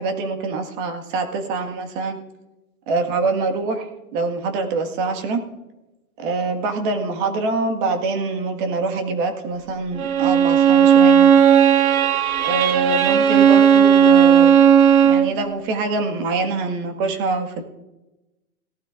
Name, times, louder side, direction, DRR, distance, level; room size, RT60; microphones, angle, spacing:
voice 1, 0.0-2.2 2.9-5.4 6.2-11.3 12.4-14.6 15.0-17.6, right 3 dB, 35° right, 6 dB, 1.8 m, -24 dB
Bowed string instrument, 10.0-15.3, right 8 dB, 70° right, 1.2 m, -14 dB
18.5 x 12.0 x 2.5 m, 0.99 s
hypercardioid pair, 145°, 45 cm